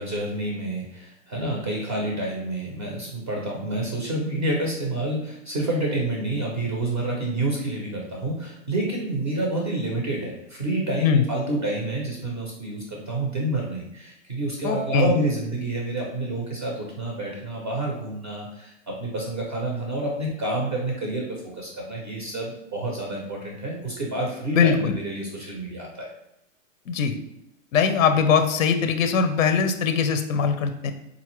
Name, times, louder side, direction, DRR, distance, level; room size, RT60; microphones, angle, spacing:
voice 1, 0.0-21.3 21.5-26.1, right 1 dB, 20° right, -1 dB, 0.4 m, -28 dB
voice 2, 14.6-15.1 24.5-25.0 26.9-27.2 27.7-30.9, left 6 dB, 90° left, 7 dB, 0.6 m, -21 dB
4.0 x 2.4 x 3.0 m, 0.82 s
hypercardioid pair, 155°, 39 cm